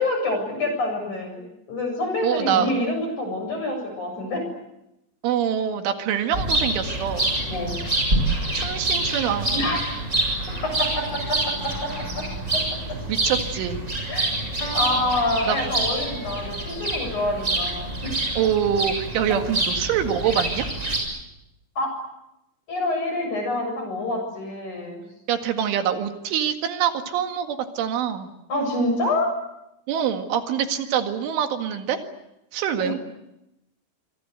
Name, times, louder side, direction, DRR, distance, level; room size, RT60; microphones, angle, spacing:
voice 1, 0.0-1.4 1.7-4.4 7.5-7.8 9.5-9.8 10.6-12.3 12.5-13.0 14.1-14.3 14.7-18.1 21.8-22.0 22.7-25.0 28.5-29.3 32.8-32.9, left 2 dB, 40° left, 4 dB, 8.6 m, -27 dB
voice 2, 2.2-2.7 5.2-7.3 8.5-9.6 13.1-13.8 15.5-15.6 18.4-20.7 25.3-28.3 29.9-32.0 32.5-33.0, right 9 dB, 75° right, 6 dB, 4.4 m, -25 dB
sound 1, 6.3-21.0, right 2 dB, 15° right, 7.1 m, -26 dB
Piano, 14.6-16.6, right 2 dB, 20° left, 6.2 m, -40 dB
26.5 x 24.5 x 8.1 m, 0.88 s
omnidirectional pair, 5.6 m